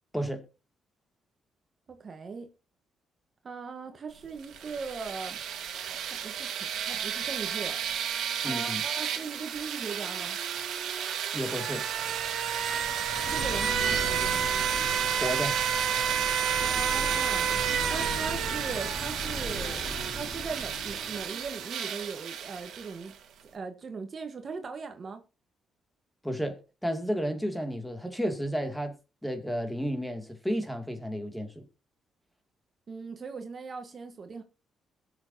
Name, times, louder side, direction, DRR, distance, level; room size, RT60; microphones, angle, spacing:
voice 1, 0.1-0.4 8.4-8.8 11.3-11.9 15.2-15.6 26.2-29.0 29.2-31.6, equal, ahead, 2.4 m, -32 dB
voice 2, 1.9-2.5 3.4-5.4 6.0-8.1 8.4-10.4 13.3-14.5 16.5-17.6 17.9-23.1 23.4-25.2 32.9-34.4, right 5 dB, 40° right, 1.3 m, -39 dB
sound 1, 4.4-23.1, right 8 dB, 75° right, 2.0 m, -31 dB
sound 2, 11.8-21.3, left 1 dB, 40° left, 2.9 m, -39 dB
21.0 x 7.2 x 2.8 m
cardioid pair, 95°, 0 cm